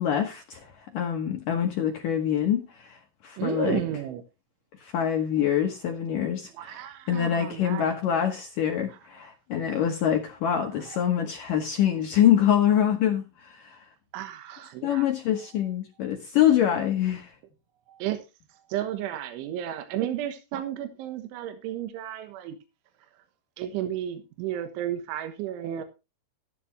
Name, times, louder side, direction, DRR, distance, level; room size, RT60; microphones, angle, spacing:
voice 1, 0.0-3.8 4.8-6.5 7.1-13.8 14.8-17.3, left 10 dB, 75° left, 2.0 m, -25 dB
voice 2, 3.4-4.2 6.5-8.0 8.9-9.0 10.6-11.0 14.1-15.1 17.9-18.2 18.5-22.6 23.6-25.8, right 11 dB, 80° right, 3.6 m, -33 dB
14.5 x 11.0 x 2.9 m
omnidirectional pair, 5.5 m